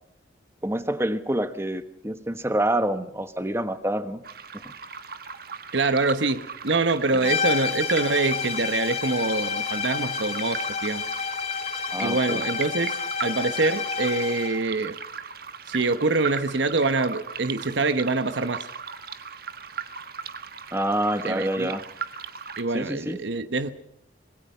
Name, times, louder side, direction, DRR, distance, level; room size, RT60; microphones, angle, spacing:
voice 1, 0.6-4.2 4.5-4.7 11.9-12.4 20.7-21.8 22.7-23.2, right 1 dB, 15° right, 1.2 m, -27 dB
sound 1, 4.2-22.6, right 6 dB, 55° right, 1.5 m, -38 dB
voice 2, 5.7-11.0 12.0-15.0 15.7-18.7 21.3-21.7 22.6-23.7, right 3 dB, 75° right, 1.1 m, -25 dB
sound 2, 7.2-14.6, left 6 dB, 35° left, 3.2 m, -29 dB
26.0 x 21.0 x 5.6 m
head